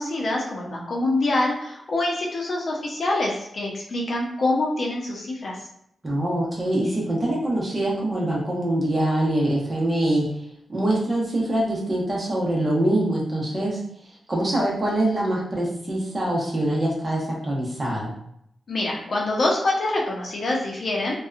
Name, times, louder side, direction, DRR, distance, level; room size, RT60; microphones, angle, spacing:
voice 1, 0.0-5.6 18.7-21.2, left 2 dB, 55° left, -2 dB, 0.7 m, -25 dB
voice 2, 6.0-10.3 10.7-13.8 14.3-18.1, right 1 dB, 30° right, -4 dB, 0.9 m, -24 dB
2.7 x 2.3 x 2.4 m, 0.73 s
cardioid pair, 90°, 0 cm